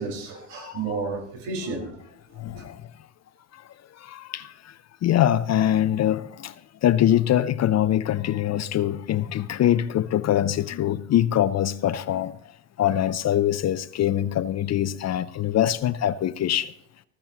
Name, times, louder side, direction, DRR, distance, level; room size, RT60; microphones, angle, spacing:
voice 1, 0.0-2.0 2.5-2.6, right 4 dB, 65° right, 5.0 m, -32 dB
voice 2, 0.5-0.8 2.4-2.8 3.5-3.6 4.0-4.7 5.0-6.5 6.8-12.4 12.8-16.7, left 11 dB, 35° left, 0.6 m, -23 dB
19.0 x 15.0 x 2.9 m
hypercardioid pair, 70°, 46 cm